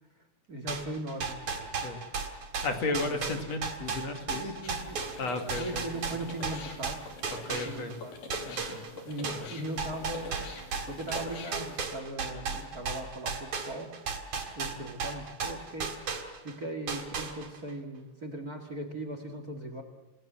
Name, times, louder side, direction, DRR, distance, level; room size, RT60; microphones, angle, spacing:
voice 1, 0.5-1.9 3.0-3.2 4.4-7.0 7.5-8.2 8.9-10.6 10.9-13.9 14.6-19.8, right 1 dB, 30° right, 7 dB, 2.3 m, -39 dB
sound 1, 0.7-8.0 8.3-16.6 16.9-17.7, right 5 dB, 60° right, 4.1 m, -35 dB
voice 2, 2.6-4.5 5.2-5.8 7.3-8.0 8.4-8.8 9.2-9.5, left 3 dB, 55° left, 5 dB, 3.3 m, -34 dB
sound 2, 4.6-11.9, left 4 dB, 90° left, 4.5 m, -45 dB
29.0 x 18.0 x 7.5 m, 1.0 s
omnidirectional pair, 3.7 m